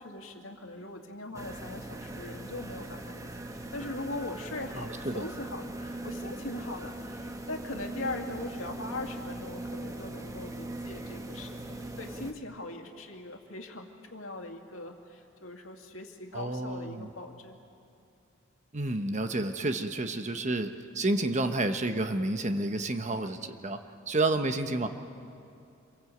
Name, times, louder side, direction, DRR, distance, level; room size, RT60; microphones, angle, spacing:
voice 1, 0.0-17.6, left 2 dB, 75° left, 3 dB, 2.4 m, -41 dB
sound 1, 1.3-12.3, right 1 dB, 15° right, 1.1 m, -40 dB
voice 2, 4.8-5.3 16.3-17.1 18.7-23.8 24.1-24.9, right 2 dB, 35° right, 7 dB, 1.1 m, -30 dB
27.0 x 23.0 x 8.0 m, 2.7 s
head